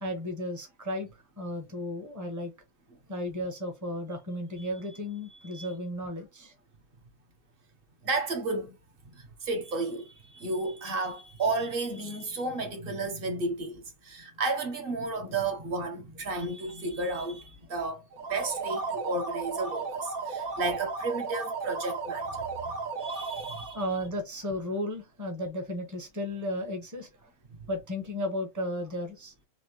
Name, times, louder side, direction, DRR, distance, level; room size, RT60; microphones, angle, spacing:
voice 1, 0.0-2.5 3.1-6.5 22.7-22.8 23.7-27.3 27.7-29.3, left 1 dB, 15° right, 0.9 m, -34 dB
voice 2, 8.0-8.8 9.2-18.0 18.3-23.8 27.5-27.6, right 3 dB, 45° right, 1.1 m, -33 dB
sound 1, 18.1-23.8, right 4 dB, 75° right, 1.8 m, -34 dB
4.2 x 2.8 x 3.0 m
omnidirectional pair, 1.5 m